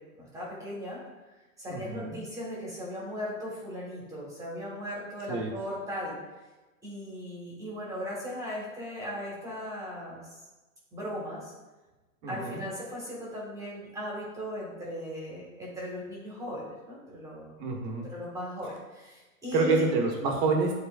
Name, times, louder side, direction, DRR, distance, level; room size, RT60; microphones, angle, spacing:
voice 1, 0.2-1.0 1.6-6.2 6.8-10.4 10.9-11.5 12.3-17.5 18.1-19.8, equal, 5° right, -5 dB, 1.7 m, -38 dB
voice 2, 1.7-2.2 5.3-5.5 12.2-12.6 17.6-18.1 19.5-20.7, right 3 dB, 30° right, 0 dB, 1.3 m, -27 dB
11.5 x 4.3 x 2.5 m, 1.1 s
hypercardioid pair, 155°, 44 cm